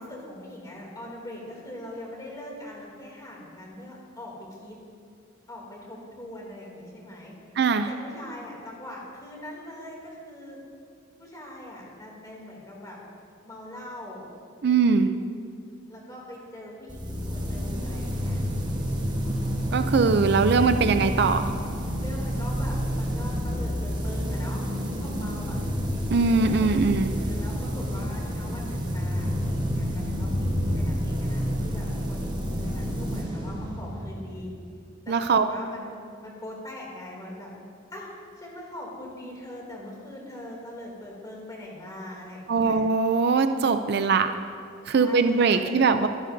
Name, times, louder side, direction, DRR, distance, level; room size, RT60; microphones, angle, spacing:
voice 1, 0.0-4.8 5.5-7.3 7.9-10.6 11.2-13.0 13.4-14.2 15.9-18.4 19.7-20.4 22.0-24.7 24.9-25.6 26.4-34.5 35.0-35.9 36.2-37.5 37.9-42.8 44.9-45.9, left 1 dB, 20° left, -3 dB, 2.8 m, -42 dB
voice 2, 7.6-7.9 14.6-15.1 19.7-21.5 26.1-27.1 35.1-35.5 42.5-44.4 44.9-46.1, right 4 dB, 55° right, 9 dB, 0.4 m, -21 dB
sound 1, 16.9-34.4, equal, 20° right, 1.2 m, -29 dB
23.5 x 11.0 x 2.7 m, 2.4 s
head